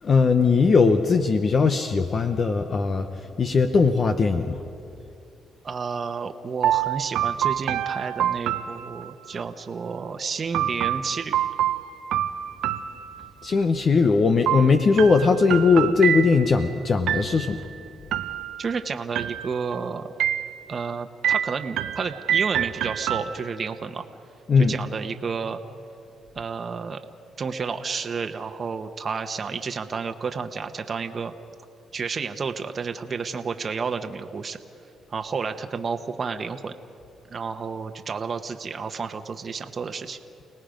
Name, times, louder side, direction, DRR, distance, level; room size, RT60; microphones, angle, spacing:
voice 1, 0.0-3.1 3.4-4.6 13.4-17.6 24.5-24.8, left 4 dB, 45° left, 7 dB, 0.9 m, -19 dB
voice 2, 5.6-11.4 18.6-20.1 20.7-24.0 24.7-25.6 26.3-27.0 27.4-31.3 31.9-34.6 35.1-36.7 37.3-40.2, right 5 dB, 40° right, 6 dB, 1.1 m, -31 dB
sound 1, 6.6-9.4 10.5-13.5 14.5-16.6 17.1-17.7 18.1-18.8 19.1-19.8 20.2-20.8 21.2-23.7, right 10 dB, 80° right, 0.7 m, -27 dB
29.5 x 18.5 x 5.2 m, 2.6 s
cardioid pair, 90°, 0 cm